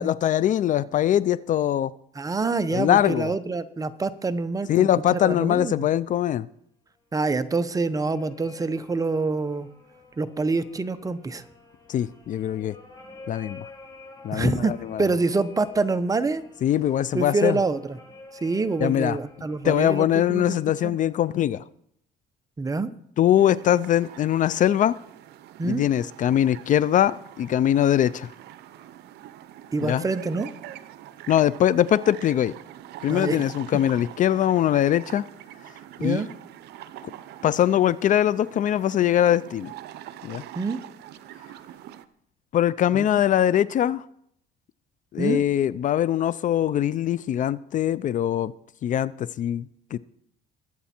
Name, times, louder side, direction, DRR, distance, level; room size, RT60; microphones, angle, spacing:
voice 1, 0.0-1.9 2.7-3.3 4.7-6.5 11.9-12.7 13.3-13.7 14.2-15.0 16.6-17.6 18.8-19.2 19.6-21.6 23.2-25.0 25.6-28.3 29.8-30.0 31.3-32.5 33.0-35.2 36.0-36.2 37.4-39.7 40.2-40.4 42.5-44.0 45.1-48.5 48.8-50.0, left 11 dB, 50° left, 18 dB, 0.5 m, -22 dB
voice 2, 2.1-5.9 7.1-9.7 10.2-11.4 14.3-14.7 15.0-16.4 17.1-18.0 18.4-21.0 22.6-22.9 25.6-25.8 29.7-30.5 33.1-33.4 36.0-36.3 40.5-40.8 42.9-43.2 45.2-45.5, right 3 dB, 20° right, 11 dB, 0.9 m, -26 dB
sound 1, 7.1-21.5, left 3 dB, 20° left, 5.1 m, -50 dB
sound 2, 23.4-42.1, right 12 dB, 75° right, 0.7 m, -44 dB
21.5 x 8.2 x 4.4 m, 0.70 s
cardioid pair, 110°, 17 cm